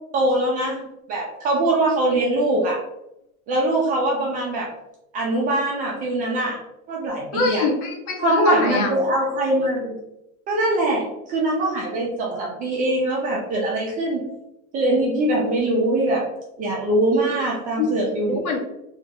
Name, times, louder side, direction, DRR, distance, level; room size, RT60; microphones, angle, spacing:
voice 1, 0.1-2.8 3.5-4.7 5.1-6.6 6.9-7.7 8.2-10.0 10.5-14.3 14.7-16.2 16.6-18.5, right 1 dB, 20° right, -2 dB, 0.4 m, -22 dB
voice 2, 7.3-8.9 17.8-17.9 18.3-18.6, left 3 dB, 75° left, 2 dB, 1.1 m, -22 dB
3.4 x 2.4 x 2.7 m, 0.84 s
supercardioid pair, 135°, 43 cm